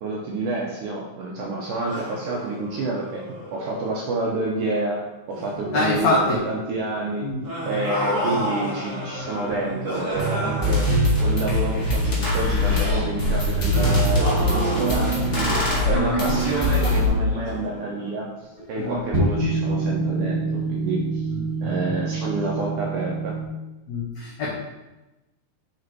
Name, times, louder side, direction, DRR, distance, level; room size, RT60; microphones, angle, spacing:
voice 1, 0.0-3.2 3.5-7.3 7.6-10.9 11.2-15.6 15.9-18.3 18.7-21.2 21.6-23.3, right 2 dB, 80° right, -2 dB, 1.8 m, -28 dB
sound 1, 1.8-4.9 5.3-5.6 7.4-12.0 13.7-18.3, equal, 55° right, 0.8 m, -32 dB
sound 2, 5.6-8.3 9.2-13.2 13.5-18.0 18.6-18.7 19.0-23.5, right 4 dB, 25° right, 1.2 m, -28 dB
voice 2, 5.7-6.4 7.2-7.4 16.0-16.4 18.8-19.0 21.3-21.4 21.6-22.0 23.9-24.5, left 3 dB, 75° left, -5 dB, 1.6 m, -25 dB
sound 3, 10.2-10.3 10.6-17.0, left 2 dB, 45° left, 0.9 m, -23 dB
7.9 x 4.2 x 4.6 m, 1.0 s
omnidirectional pair, 4.7 m